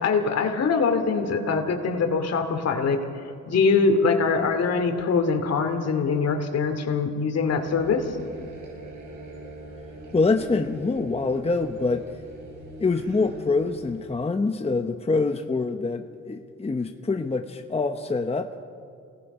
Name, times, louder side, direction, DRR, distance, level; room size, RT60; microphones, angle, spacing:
voice 1, 0.0-3.0 3.5-8.1, left 4 dB, 55° left, 6 dB, 2.6 m, -23 dB
sound 1, 7.6-14.0, right 1 dB, 80° right, 6.1 m, -42 dB
voice 2, 10.1-12.1 12.8-18.5, left 3 dB, 20° left, 5 dB, 1.0 m, -25 dB
27.5 x 18.5 x 5.6 m, 2.3 s
cardioid pair, 90°, 30 cm